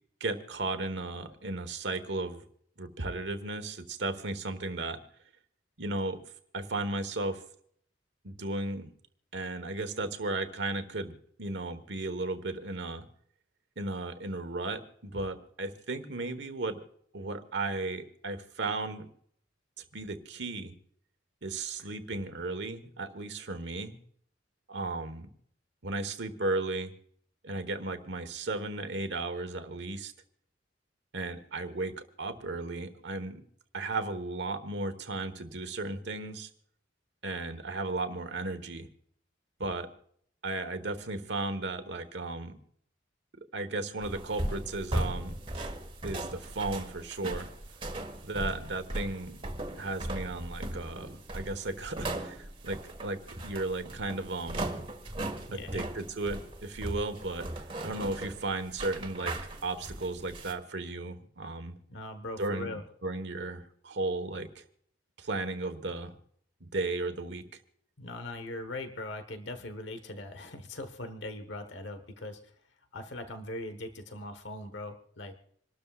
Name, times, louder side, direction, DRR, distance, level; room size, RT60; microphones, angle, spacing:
voice 1, 0.2-2.4 2.8-5.0 5.8-6.2 6.5-7.4 8.2-8.9 9.3-13.1 13.8-16.8 17.1-19.1 19.8-20.7 21.4-23.9 24.7-25.3 25.8-26.9 27.4-30.1 31.1-33.4 33.7-36.5 37.2-38.9 39.6-39.9 40.4-42.6 43.5-45.4 46.0-47.5 48.2-49.4 49.8-54.9 55.5-59.4 59.6-61.8 62.4-64.6 65.2-66.1 66.6-67.6, right 2 dB, 65° right, 8 dB, 1.3 m, -35 dB
sound 1, 44.0-60.5, right 1 dB, 30° right, 1.6 m, -38 dB
voice 2, 55.5-55.9 61.9-62.8 68.0-72.5 72.9-75.4, left 2 dB, 70° left, 9 dB, 1.2 m, -40 dB
27.5 x 12.5 x 2.4 m, 0.64 s
head